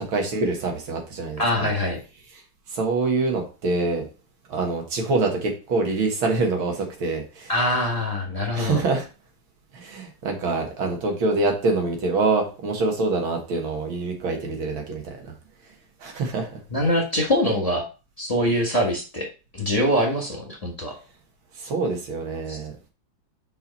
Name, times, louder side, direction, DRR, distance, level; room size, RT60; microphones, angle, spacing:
voice 1, 0.1-1.7 2.7-4.1 4.5-7.5 8.5-9.1 9.7-15.3 16.0-16.6 21.5-22.7, right 3 dB, 90° right, 2 dB, 2.3 m, -25 dB
voice 2, 1.4-2.0 7.5-8.8 16.7-17.9 18.2-20.9 22.5-22.6, left 1 dB, 20° left, -1 dB, 1.3 m, -23 dB
5.7 x 5.0 x 4.1 m, 0.32 s
omnidirectional pair, 2.2 m